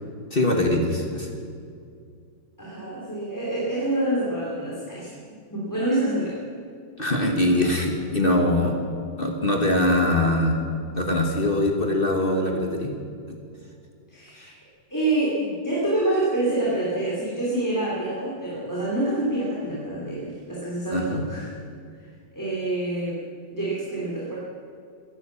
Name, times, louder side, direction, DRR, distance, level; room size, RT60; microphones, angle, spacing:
voice 1, 0.3-1.3 7.0-8.8 9.2-10.6 10.9-12.9 13.3-13.4 14.4-14.5 20.9-21.2, left 1 dB, 30° left, 2 dB, 1.5 m, -22 dB
voice 2, 2.6-5.2 5.5-6.4 14.1-14.6 14.9-21.5 22.3-23.2 23.5-24.4, right 1 dB, 10° left, -7 dB, 2.7 m, -27 dB
15.5 x 11.0 x 7.2 m, 2.3 s
omnidirectional pair, 2.2 m